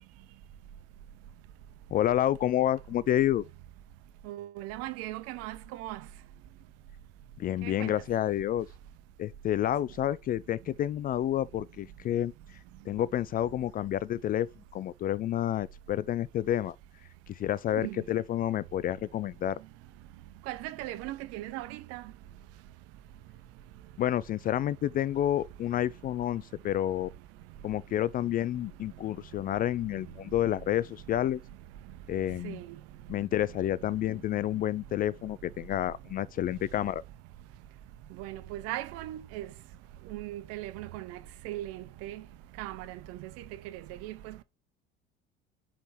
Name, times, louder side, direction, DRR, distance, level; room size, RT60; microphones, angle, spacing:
voice 1, 1.9-3.5 7.4-8.7 9.2-12.3 12.9-14.5 14.7-16.8 17.3-19.6 24.0-27.1 27.6-31.4 32.1-32.6 33.1-37.0, left 12 dB, 30° left, 0.4 m, -29 dB
voice 2, 4.3-6.0 7.6-7.9 17.8-18.0 20.5-22.0 32.4-32.7 38.2-39.5 40.1-41.2 41.4-42.2 42.6-43.3 43.6-44.4, right 15 dB, 55° right, 0.8 m, -38 dB
5.4 x 4.7 x 5.6 m
figure-of-eight pair, 60°, 30 cm